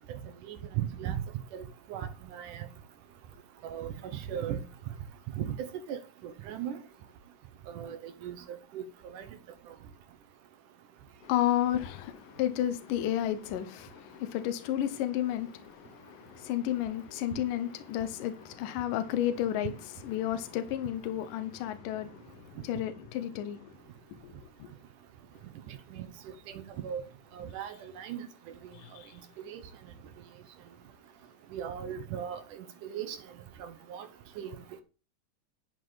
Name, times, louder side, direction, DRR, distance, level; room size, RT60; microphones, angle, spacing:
voice 1, 0.5-1.2 1.5-1.6 1.9-2.7 3.6-4.6 5.3-6.8 7.7-8.8 9.1-9.3 25.7-26.1 26.5-27.0 27.3-28.3 29.5-29.6 31.5-33.2 33.6-34.1 34.4-34.6, right 9 dB, 70° right, 2.5 m, -37 dB
voice 2, 11.2-23.7 24.2-24.3 24.6-24.7 28.7-29.1, left 11 dB, 80° left, 2.6 m, -32 dB
11.0 x 7.8 x 4.0 m
omnidirectional pair, 3.9 m